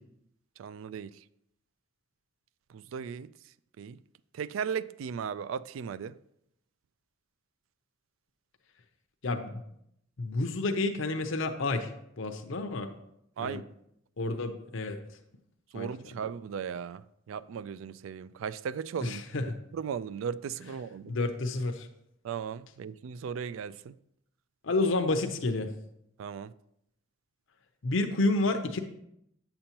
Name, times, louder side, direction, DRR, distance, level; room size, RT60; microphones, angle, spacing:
voice 1, 0.6-1.1 2.7-3.3 3.8-4.0 4.3-6.2 13.4-13.6 15.7-19.2 19.7-21.1 22.2-23.9 26.2-26.5, right 7 dB, 80° right, 0.3 m, -36 dB
voice 2, 9.2-9.6 10.2-11.9 12.2-12.9 13.4-13.6 14.2-15.0 15.7-15.9 19.0-19.5 21.1-21.9 24.6-25.7 27.8-28.8, left 2 dB, 75° left, 0.7 m, -29 dB
8.6 x 6.9 x 2.9 m
head